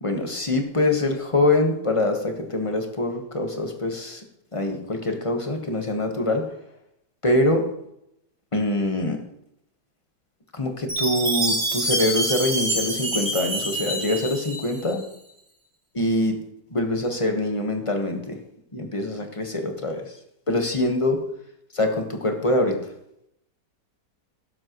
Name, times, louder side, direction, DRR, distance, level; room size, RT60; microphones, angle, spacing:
voice 1, 0.0-4.2 4.5-6.5 7.2-7.6 8.5-9.2 10.5-15.1 15.9-16.4 16.7-18.4 18.7-20.0 20.5-21.2 21.7-22.8, left 1 dB, 20° left, 4 dB, 1.2 m, -24 dB
Chime, 10.9-15.0, right 1 dB, 45° right, 3.1 m, -26 dB
17.0 x 7.6 x 3.1 m, 0.79 s
omnidirectional pair, 1.8 m